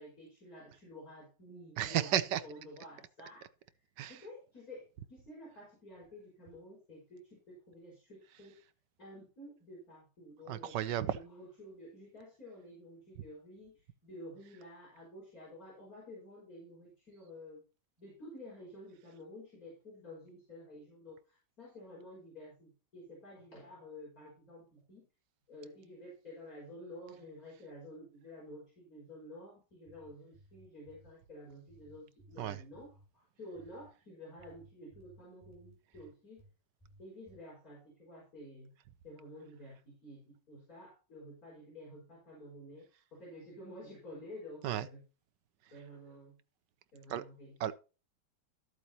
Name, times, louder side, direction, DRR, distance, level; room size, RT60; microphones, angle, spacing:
voice 1, 0.0-3.5 4.1-8.6 9.0-10.8 11.1-17.6 18.0-25.1 25.5-36.5 37.0-38.7 39.0-45.0 45.7-46.4 46.9-47.6, left 1 dB, 55° left, 5.4 m, -51 dB
voice 2, 1.8-2.4 4.0-4.1 10.5-11.2 32.4-32.6 44.6-44.9 47.1-47.2 47.6-47.7, right 11 dB, 85° right, 1.5 m, -32 dB
sound 1, 29.7-31.1 31.7-33.1 33.5-33.9 34.4-36.5 36.8-37.4, right 1 dB, 10° left, 3.6 m, -60 dB
13.5 x 8.1 x 2.8 m
omnidirectional pair, 1.8 m